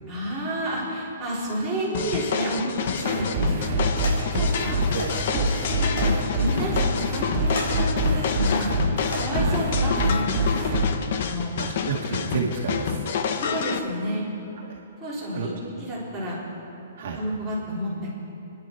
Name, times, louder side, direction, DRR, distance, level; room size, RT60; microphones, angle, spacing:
voice 1, 0.1-5.0 5.3-5.5 5.8-10.8 11.3-11.5 13.3-14.3 15.0-15.5 15.8-16.4 17.1-17.9, right 1 dB, ahead, -12 dB, 3.9 m, -30 dB
sound 1, 1.9-13.8, left 7 dB, 40° left, 0.8 m, -28 dB
sound 2, 2.7-3.0 3.5-3.7 4.0-4.2 5.0-5.1 5.4-5.5 5.9-6.1 6.5-6.6 7.4-7.7 8.2-8.5 9.0-9.3 10.2-10.4 10.9-11.0, left 1 dB, 75° left, 4.5 m, -34 dB
sound 3, 3.0-10.8, right 2 dB, 20° right, 2.9 m, -25 dB
voice 2, 11.6-13.0 15.3-15.5 17.0-17.2, right 5 dB, 45° right, -2 dB, 1.9 m, -30 dB
27.0 x 11.0 x 4.6 m, 2.8 s
hypercardioid pair, 175°, 0 cm